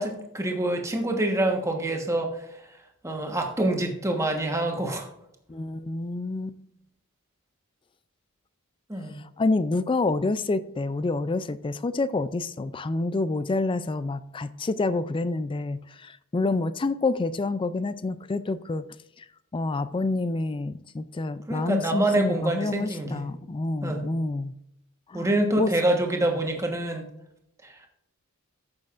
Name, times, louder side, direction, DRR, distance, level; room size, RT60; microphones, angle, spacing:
voice 1, 0.0-2.3 3.0-5.1 8.9-9.2 21.5-23.2 23.8-24.1 25.1-27.1, right 1 dB, 15° right, 1.2 m, -26 dB
voice 2, 5.5-6.6 9.4-18.8 19.2-19.3 19.5-24.5 25.1-25.3 25.6-25.7, left 3 dB, 25° left, 0.3 m, -28 dB
14.5 x 6.4 x 2.5 m
head